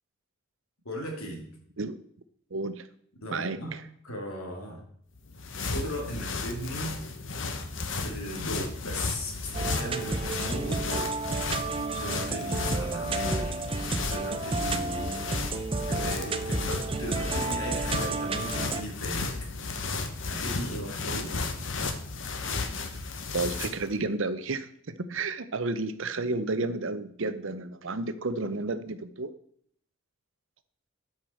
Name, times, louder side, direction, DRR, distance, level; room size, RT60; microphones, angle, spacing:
voice 1, 0.8-1.4 3.2-3.8 4.0-4.9 5.7-6.9 8.0-11.1 12.0-13.5 14.1-15.3 15.8-19.3 20.2-21.4, equal, 85° left, 0 dB, 2.9 m, -37 dB
voice 2, 2.5-2.9 3.3-3.8 23.3-29.3, right 3 dB, 65° right, 12 dB, 0.7 m, -31 dB
sound 1, 5.2-23.9, left 4 dB, 60° left, 1.1 m, -34 dB
sound 2, 9.5-18.8, right 3 dB, 25° right, 0.6 m, -31 dB
12.5 x 5.9 x 4.5 m, 0.66 s
head